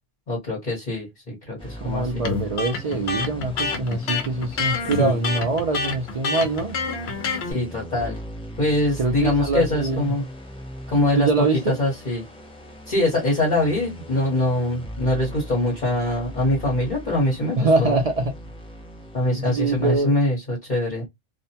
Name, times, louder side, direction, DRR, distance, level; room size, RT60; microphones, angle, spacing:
voice 1, 0.3-2.2 5.0-5.2 7.5-8.2 8.6-10.2 10.9-11.3 11.7-12.2 12.9-18.0 19.1-21.0, left 1 dB, 45° left, 1.1 m, -23 dB
sound 1, 1.6-20.0, equal, 5° left, 0.6 m, -39 dB
voice 2, 1.8-6.8 9.0-10.1 11.2-11.8 17.6-18.3 19.3-20.2, right 3 dB, 55° right, 0.4 m, -24 dB
Electric guitar, 2.2-7.5, left 4 dB, 75° left, 0.9 m, -27 dB
2.5 x 2.1 x 2.7 m
omnidirectional pair, 1.1 m